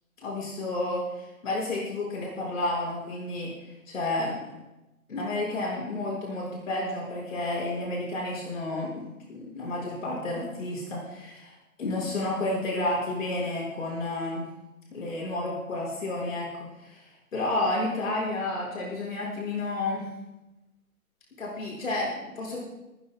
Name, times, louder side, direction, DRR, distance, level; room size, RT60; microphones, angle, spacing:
voice 1, 0.2-3.5 3.9-4.4 5.1-9.0 9.3-11.5 11.8-14.5 14.9-16.5 16.8-20.1 21.4-22.6, left 2 dB, 60° left, -4 dB, 6.4 m, -31 dB
25.5 x 15.0 x 2.4 m, 1.0 s
hypercardioid pair, 145°, 43 cm